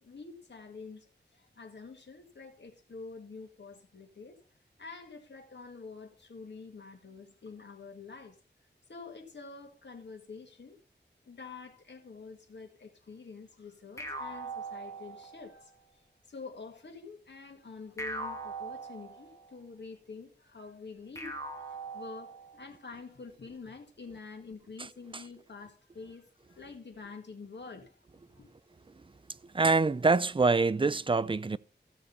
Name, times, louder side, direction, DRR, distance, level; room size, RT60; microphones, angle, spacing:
voice 1, 0.0-4.4 4.8-8.4 8.9-10.8 11.3-15.7 16.3-28.0 28.3-28.5, left 4 dB, 75° left, 2.1 m, -47 dB
sound 1, 14.0-15.6 18.0-19.6 21.1-22.7, right 2 dB, 15° left, 2.4 m, -41 dB
voice 2, 29.4-31.6, right 3 dB, 30° right, 0.4 m, -25 dB
15.5 x 6.6 x 4.2 m
wide cardioid pair, 85°, 19 cm